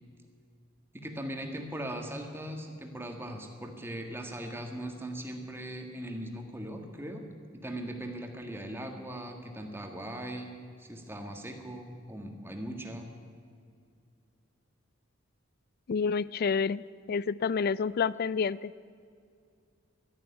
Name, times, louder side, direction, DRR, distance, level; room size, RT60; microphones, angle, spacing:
voice 1, 0.9-7.2 7.5-10.5 10.8-13.1, right 1 dB, 10° right, 3 dB, 1.7 m, -39 dB
voice 2, 15.9-16.8 17.1-18.7, left 5 dB, 50° left, 20 dB, 0.3 m, -28 dB
12.0 x 11.5 x 9.8 m, 2.3 s
head